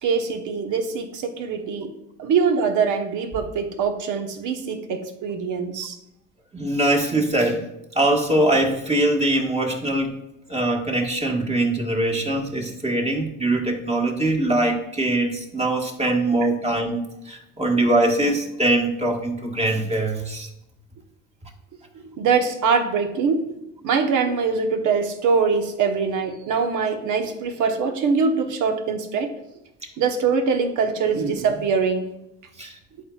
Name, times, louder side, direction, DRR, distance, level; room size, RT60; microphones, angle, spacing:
voice 1, 0.0-1.9 2.2-6.0 16.0-16.2 22.2-29.3 30.0-32.1, right 5 dB, 50° right, 6 dB, 1.3 m, -23 dB
voice 2, 6.5-7.7 7.9-10.2 10.5-20.5 32.6-32.8, right 1 dB, 15° right, 1 dB, 1.6 m, -22 dB
12.0 x 4.6 x 2.4 m, 0.86 s
hypercardioid pair, 75°, 38 cm